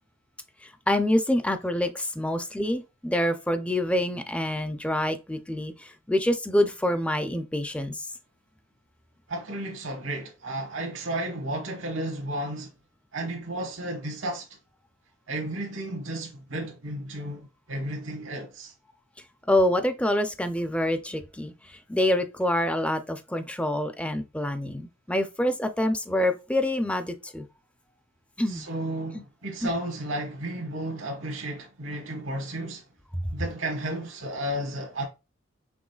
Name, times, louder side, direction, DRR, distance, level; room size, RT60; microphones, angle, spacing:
voice 1, 0.6-8.1 19.5-27.5 28.4-28.7 29.6-29.7, left 1 dB, 5° left, 0.5 m, -26 dB
voice 2, 9.3-12.7 13.1-14.5 15.3-18.7 28.5-32.8 33.3-35.0, right 1 dB, 80° right, 1.3 m, -33 dB
6.1 x 3.5 x 2.4 m
head